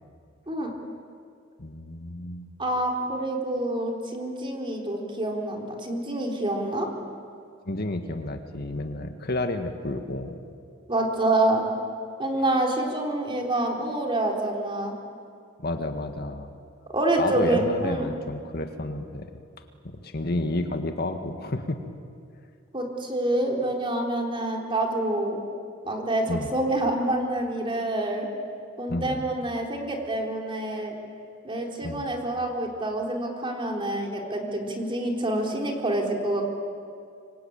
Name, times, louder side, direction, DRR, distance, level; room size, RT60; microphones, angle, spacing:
voice 1, 1.6-2.5 7.7-10.4 15.6-16.5 17.2-19.3 20.0-21.8 26.3-26.5 28.9-29.2 31.8-32.1, left 2 dB, 55° left, 6 dB, 1.7 m, -30 dB
voice 2, 2.6-6.9 10.9-11.6 12.2-14.9 16.9-18.1 22.7-25.4 25.8-28.3 28.8-31.0 31.4-36.4, right 1 dB, 25° right, 1 dB, 3.9 m, -27 dB
25.5 x 25.0 x 8.9 m, 2.3 s
head